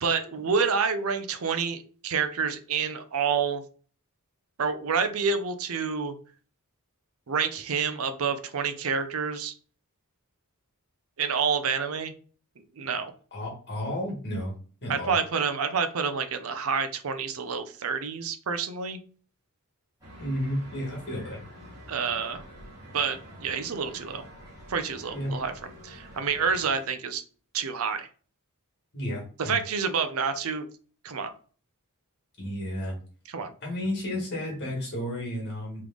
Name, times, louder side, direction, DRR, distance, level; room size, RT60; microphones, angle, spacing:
voice 1, 0.0-3.6 4.6-6.1 7.3-9.5 11.2-12.1 12.8-13.1 14.9-19.0 21.9-22.4 22.9-24.2 24.7-25.5 25.8-27.2 27.5-28.1 29.4-30.7 31.0-31.3 33.3-33.5, right 5 dB, 65° right, 9 dB, 0.6 m, -28 dB
voice 2, 13.3-14.5 14.8-15.2 20.2-21.4 25.1-25.4 28.9-29.6 32.4-33.0 33.6-35.8, left 1 dB, 50° left, -1 dB, 1.8 m, -32 dB
sound 1, 20.0-26.7, equal, 15° right, 1.6 m, -47 dB
3.5 x 3.2 x 3.7 m, 0.41 s
head